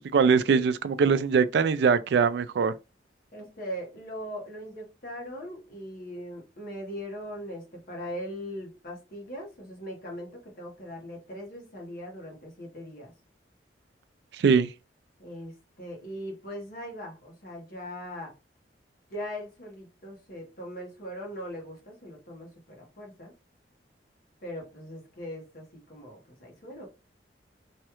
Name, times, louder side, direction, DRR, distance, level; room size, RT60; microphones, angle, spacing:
voice 1, 0.0-2.7 14.3-14.7, right 5 dB, 65° right, 0.3 m, -22 dB
voice 2, 3.3-13.1 15.2-18.3 19.1-23.3 24.4-26.9, equal, 55° left, 1.1 m, -40 dB
3.1 x 2.3 x 2.9 m
head